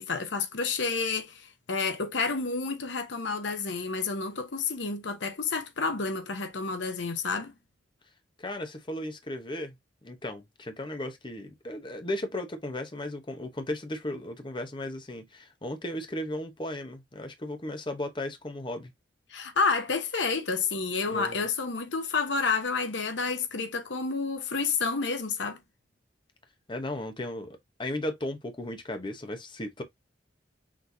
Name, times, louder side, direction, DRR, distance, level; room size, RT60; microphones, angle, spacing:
voice 1, 0.0-7.5 19.3-25.6, left 4 dB, 75° left, 0.9 m, -30 dB
voice 2, 8.4-9.7 10.0-18.9 21.1-21.4 26.7-29.8, left 1 dB, 25° left, 0.9 m, -35 dB
6.1 x 3.3 x 2.7 m
head